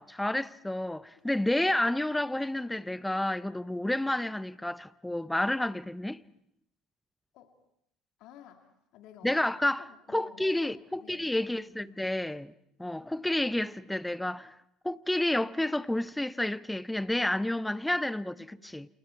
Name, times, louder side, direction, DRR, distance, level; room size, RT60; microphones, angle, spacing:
voice 1, 0.0-6.2 9.2-9.8 10.1-12.5 12.8-14.5 14.8-18.9, left 1 dB, 5° left, 0.8 m, -30 dB
voice 2, 8.2-9.5 9.8-12.0 18.4-18.8, left 10 dB, 60° left, 2.3 m, -54 dB
29.0 x 28.0 x 4.6 m
hypercardioid pair, 60°, 0 cm